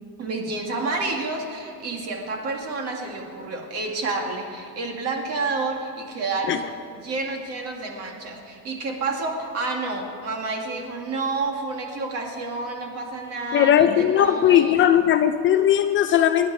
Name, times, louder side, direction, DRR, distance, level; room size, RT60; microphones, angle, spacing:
voice 1, 0.2-6.6 6.9-14.7, right 3 dB, 45° right, 1 dB, 2.3 m, -29 dB
voice 2, 13.5-16.5, left 10 dB, 35° left, 9 dB, 0.4 m, -18 dB
26.5 x 10.5 x 4.9 m, 2.5 s
cardioid pair, 170°, 36 cm